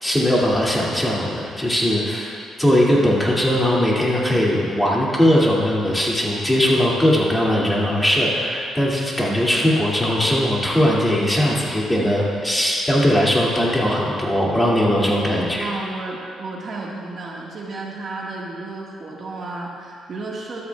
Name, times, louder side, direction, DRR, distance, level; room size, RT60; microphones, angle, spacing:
voice 1, 0.0-15.7, equal, 10° left, -5 dB, 2.3 m, -19 dB
voice 2, 2.7-3.1 12.0-12.5 14.8-15.1 15.6-20.6, right 3 dB, 50° right, -3 dB, 1.6 m, -33 dB
13.0 x 13.0 x 2.3 m, 2.3 s
cardioid pair, 90°, 0 cm